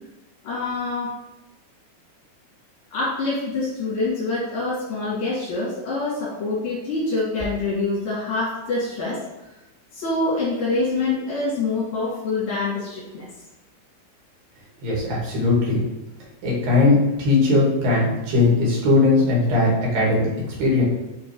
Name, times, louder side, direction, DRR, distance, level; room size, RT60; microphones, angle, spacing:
voice 1, 0.4-1.1 2.9-9.5 9.9-13.3, left 3 dB, 85° left, -8 dB, 4.0 m, -25 dB
voice 2, 14.8-15.9 16.4-20.8, left 3 dB, 85° right, -4 dB, 3.5 m, -19 dB
9.6 x 3.3 x 3.2 m, 0.97 s
omnidirectional pair, 3.9 m